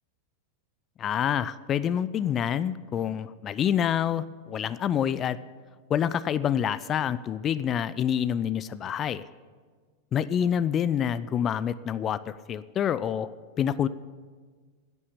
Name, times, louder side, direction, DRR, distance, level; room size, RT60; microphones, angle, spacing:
voice 1, 1.0-5.4 5.9-9.3 10.1-13.3 13.6-13.9, left 9 dB, 30° left, 16 dB, 0.4 m, -27 dB
11.0 x 8.6 x 9.7 m, 1.5 s
figure-of-eight pair, 90°, 0 cm